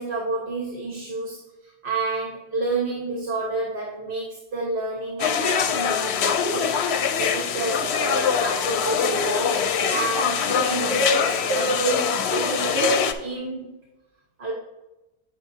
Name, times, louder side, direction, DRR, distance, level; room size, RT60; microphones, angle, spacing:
voice 1, 0.0-1.4 1.8-6.7 7.2-13.8 14.4-14.5, right 2 dB, 55° right, -3 dB, 1.4 m, -28 dB
sound 1, 5.2-13.1, left 7 dB, 85° left, 0.9 m, -23 dB
8.5 x 6.6 x 2.7 m, 1.0 s
omnidirectional pair, 1.1 m